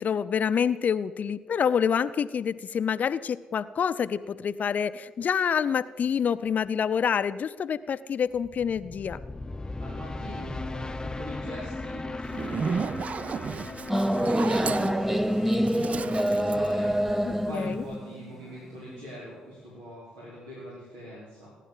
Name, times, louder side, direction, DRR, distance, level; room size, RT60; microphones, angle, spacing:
voice 1, 0.0-9.2 17.5-17.8, left 7 dB, 50° left, 13 dB, 0.6 m, -27 dB
sound 1, 8.3-17.5, left 2 dB, 20° left, 0.8 m, -38 dB
voice 2, 9.8-21.6, equal, 80° right, -7 dB, 4.3 m, -43 dB
Zipper (clothing), 12.2-17.5, right 5 dB, 45° right, 0.4 m, -33 dB
sound 2, 13.9-19.0, equal, 5° right, 0.8 m, -26 dB
19.0 x 10.0 x 7.4 m, 1.4 s
hypercardioid pair, 45°, 3 cm